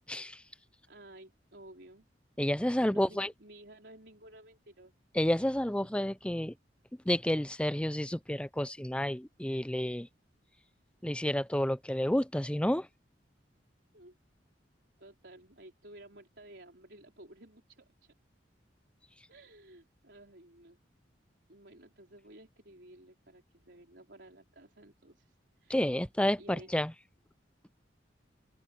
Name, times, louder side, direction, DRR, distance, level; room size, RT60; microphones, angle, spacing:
voice 1, 0.1-0.4 2.4-3.3 5.2-6.5 7.1-10.1 11.0-12.9 25.7-26.9, left 1 dB, 5° left, 0.6 m, -30 dB
voice 2, 0.9-2.1 2.6-4.9 13.9-14.2 15.0-18.1 19.3-20.8 21.5-25.9 26.4-26.7, right 1 dB, 65° right, 4.8 m, -54 dB
open air
head